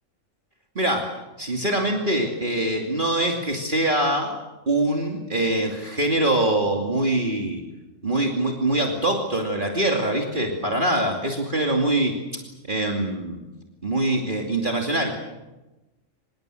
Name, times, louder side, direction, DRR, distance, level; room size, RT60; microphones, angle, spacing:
voice 1, 0.7-4.3 4.7-7.6 8.0-12.2 12.7-13.4 13.8-15.3, right 1 dB, 40° right, 1 dB, 2.8 m, -24 dB
25.5 x 22.0 x 8.0 m, 1.1 s
omnidirectional pair, 1.3 m